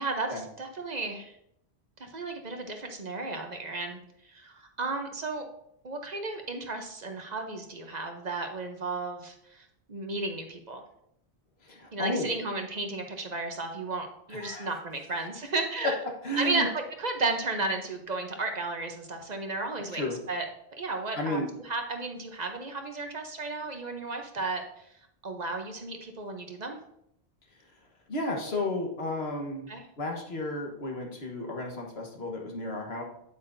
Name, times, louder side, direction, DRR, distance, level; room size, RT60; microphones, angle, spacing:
voice 1, 0.0-1.3 2.0-4.0 4.3-5.5 5.8-10.8 11.9-15.9 16.4-20.4 20.7-24.6 25.2-26.8 29.7-29.8, right 3 dB, 45° right, 4 dB, 0.9 m, -34 dB
voice 2, 11.6-12.3 14.3-14.8 15.8-16.7 19.9-20.2 21.2-21.5 28.1-29.7 30.0-33.0, left 1 dB, 85° left, 1 dB, 1.6 m, -32 dB
8.4 x 8.2 x 2.6 m, 0.74 s
omnidirectional pair, 1.0 m